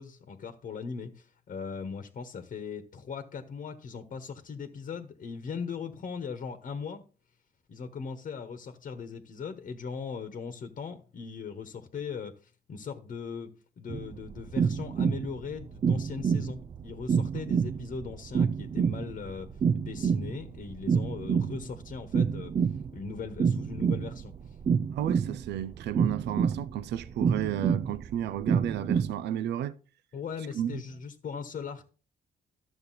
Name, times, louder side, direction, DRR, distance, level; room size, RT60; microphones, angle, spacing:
voice 1, 0.0-7.0 7.7-13.5 13.8-19.5 19.7-22.5 22.9-24.3 30.1-31.8, left 5 dB, 50° left, 1.2 m, -39 dB
sound 1, 13.9-29.1, right 6 dB, 35° right, 0.4 m, -28 dB
voice 2, 24.9-29.8 30.5-30.8, right 11 dB, 85° right, 0.6 m, -33 dB
12.5 x 6.8 x 4.2 m
cardioid pair, 120°, 17 cm